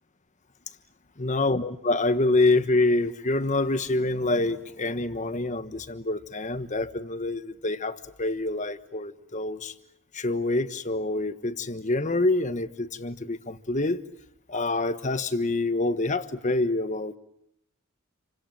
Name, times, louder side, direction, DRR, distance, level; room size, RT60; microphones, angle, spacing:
voice 1, 1.2-9.7 10.1-14.0 14.5-17.2, left 2 dB, 35° left, 12 dB, 1.3 m, -26 dB
29.5 x 25.5 x 7.8 m, 0.75 s
head